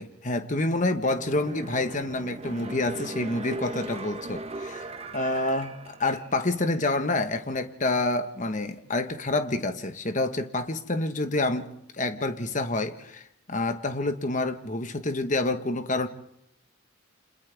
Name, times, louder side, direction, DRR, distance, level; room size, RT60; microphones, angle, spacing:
voice 1, 0.0-4.9 5.1-13.2 13.5-16.1, left 2 dB, 35° left, 1.3 m, -28 dB
sound 1, 1.0-6.6 7.0-7.1, right 2 dB, 30° right, 1.1 m, -38 dB
29.5 x 26.5 x 3.5 m
head